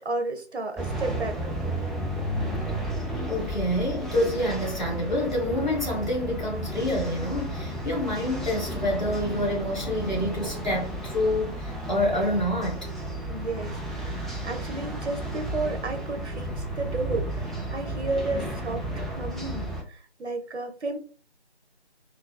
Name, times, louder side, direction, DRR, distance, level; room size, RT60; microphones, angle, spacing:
voice 1, 0.0-1.4 13.3-21.0, right 3 dB, 75° right, 0.8 m, -33 dB
sound 1, 0.8-19.8, right 1 dB, ahead, 0.3 m, -33 dB
voice 2, 3.3-12.9, left 1 dB, 40° left, 1.2 m, -27 dB
3.3 x 2.3 x 2.2 m
figure-of-eight pair, 180°, 34 cm